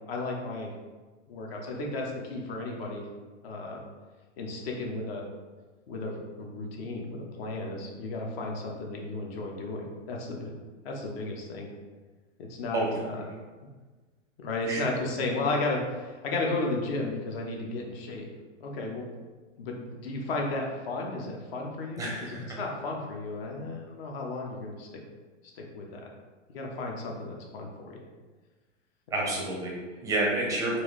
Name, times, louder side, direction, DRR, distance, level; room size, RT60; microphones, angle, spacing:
voice 1, 0.1-0.7 1.3-3.0 3.4-3.8 4.4-5.3 5.9-10.5 10.8-11.7 12.5-13.2 14.4-18.3 18.6-19.2 19.6-24.9 25.6-26.1 26.5-28.0 29.2-29.3, left 2 dB, 50° left, 0 dB, 1.0 m, -34 dB
voice 2, 22.0-22.6 29.1-30.8, right 2 dB, 10° right, -2 dB, 0.5 m, -29 dB
4.6 x 2.7 x 3.1 m, 1.3 s
hypercardioid pair, 140°, 37 cm